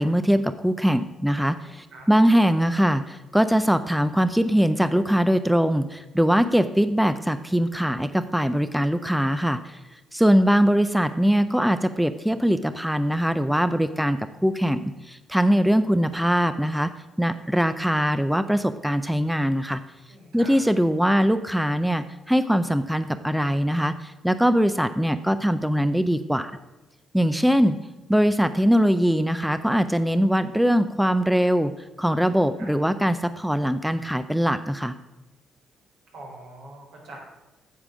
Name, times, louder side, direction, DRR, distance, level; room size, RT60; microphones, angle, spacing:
voice 1, 0.0-9.8 10.1-16.9 17.2-19.8 20.3-23.9 24.2-26.5 27.1-27.8 28.1-31.7 32.0-34.9, equal, ahead, 11 dB, 0.5 m, -22 dB
voice 2, 1.6-2.1 20.1-20.6 32.2-32.7 36.1-37.2, right 2 dB, 80° right, -2 dB, 3.7 m, -44 dB
8.4 x 7.4 x 6.2 m, 1.0 s
cardioid pair, 90°, 0 cm